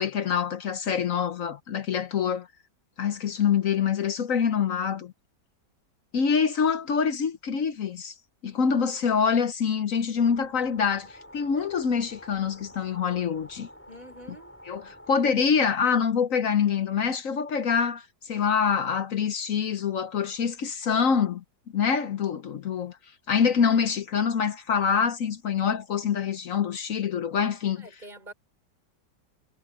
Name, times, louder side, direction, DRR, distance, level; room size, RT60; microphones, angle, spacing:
voice 1, 0.0-2.5 3.0-5.1 6.1-8.1 8.4-13.7 14.7-21.4 21.7-23.0 23.3-27.9, left 6 dB, 55° left, 1.1 m, -25 dB
sound 1, 10.2-15.2, equal, 5° left, 6.9 m, -49 dB
voice 2, 13.9-14.6 27.8-28.3, right 1 dB, 25° right, 5.8 m, -46 dB
omnidirectional pair, 1.9 m